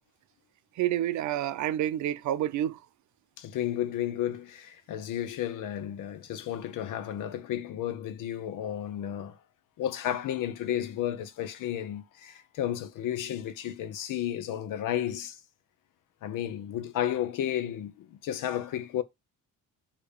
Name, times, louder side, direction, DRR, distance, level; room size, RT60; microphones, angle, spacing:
voice 1, 0.8-2.8, right 12 dB, 60° right, 0.5 m, -28 dB
voice 2, 3.4-9.4 9.8-15.4 16.2-19.0, left 11 dB, 70° left, 0.8 m, -32 dB
6.7 x 2.9 x 5.0 m
cardioid pair, 170°, 33 cm